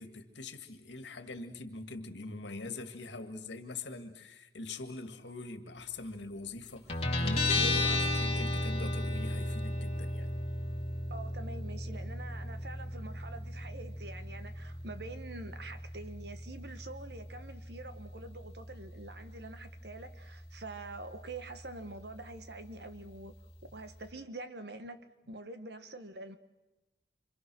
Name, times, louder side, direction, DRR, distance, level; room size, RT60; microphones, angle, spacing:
voice 1, 0.0-10.3, left 3 dB, 80° left, 7 dB, 2.0 m, -43 dB
Guitar, 6.9-24.1, left 1 dB, 35° left, 2.5 m, -36 dB
voice 2, 11.1-23.3 23.7-25.0 25.3-26.4, right 2 dB, 65° right, 9 dB, 1.4 m, -46 dB
27.0 x 25.5 x 6.3 m, 1.1 s
head